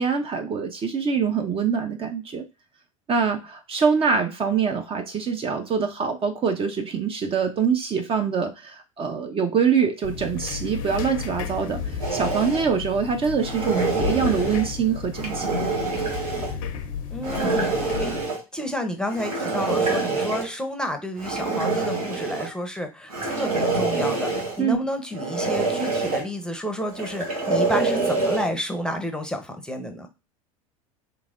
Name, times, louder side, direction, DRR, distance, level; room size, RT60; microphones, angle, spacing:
voice 1, 0.0-2.4 3.1-15.6 24.6-24.8, right 6 dB, 30° right, 5 dB, 0.6 m, -24 dB
sound 1, 10.0-18.3, left 7 dB, 65° left, 0.7 m, -33 dB
sound 2, 12.0-12.6 13.4-14.7 15.1-16.5 17.2-18.4 19.1-20.5 21.2-22.5 23.1-24.6 25.1-26.2 26.9-28.5, right 3 dB, 85° right, 1.1 m, -26 dB
voice 2, 17.1-18.2 18.5-30.1, equal, 5° left, 5 dB, 0.7 m, -30 dB
3.4 x 3.1 x 2.5 m, 0.27 s
hypercardioid pair, 80°, 18 cm